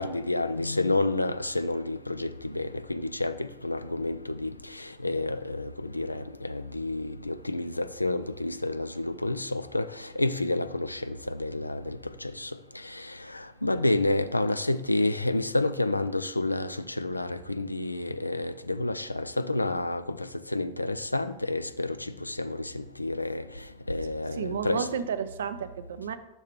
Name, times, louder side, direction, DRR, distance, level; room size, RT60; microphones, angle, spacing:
voice 1, 0.0-24.9, left 2 dB, 85° left, 12 dB, 0.3 m, -30 dB
voice 2, 24.4-26.2, right 7 dB, 65° right, 12 dB, 0.4 m, -32 dB
6.1 x 5.4 x 3.6 m, 0.93 s
figure-of-eight pair, 90°, 0 cm